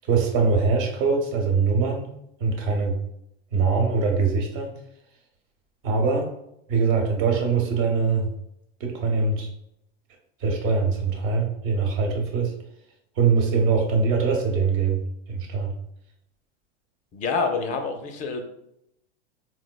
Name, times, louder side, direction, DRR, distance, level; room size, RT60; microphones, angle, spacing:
voice 1, 0.1-2.1 2.4-3.0 3.5-4.8 5.8-6.3 6.7-8.3 8.8-9.5 10.4-12.5 13.2-15.0 15.3-15.7, right 4 dB, 55° right, 1 dB, 0.9 m, -22 dB
voice 2, 17.1-18.4, left 4 dB, 25° left, 5 dB, 0.4 m, -27 dB
4.6 x 2.1 x 2.2 m, 0.77 s
hypercardioid pair, 120°, 32 cm